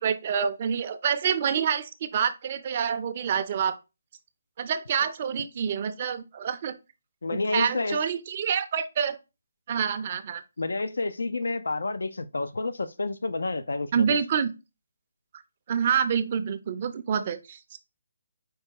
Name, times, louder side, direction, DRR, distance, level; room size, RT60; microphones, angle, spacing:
voice 1, 0.0-3.8 4.6-6.7 7.3-9.2 9.7-10.4 13.9-14.5 15.7-17.8, right 7 dB, 35° right, 0.5 m, -27 dB
voice 2, 7.2-8.0 10.6-14.1, left 3 dB, 85° left, 0.4 m, -29 dB
4.5 x 2.2 x 4.6 m
hypercardioid pair, 165°, 0 cm